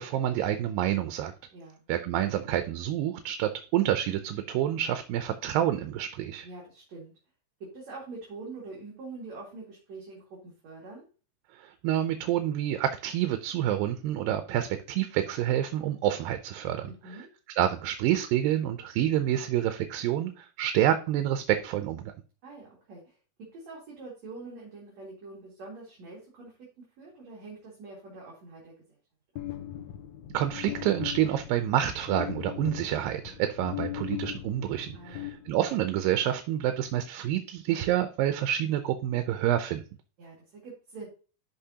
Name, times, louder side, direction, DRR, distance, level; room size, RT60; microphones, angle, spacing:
voice 1, 0.0-1.3 1.9-6.5 11.6-16.9 17.6-22.1 30.3-39.8, right 11 dB, 90° right, 8 dB, 2.4 m, -28 dB
voice 2, 6.4-7.1 7.6-11.1 16.8-17.3 22.4-28.7 34.9-35.3 40.2-41.1, right 3 dB, 55° right, -4 dB, 3.2 m, -45 dB
sound 1, 29.4-36.0, left 13 dB, 75° left, 2.0 m, -39 dB
12.5 x 5.2 x 2.8 m, 0.37 s
omnidirectional pair, 3.9 m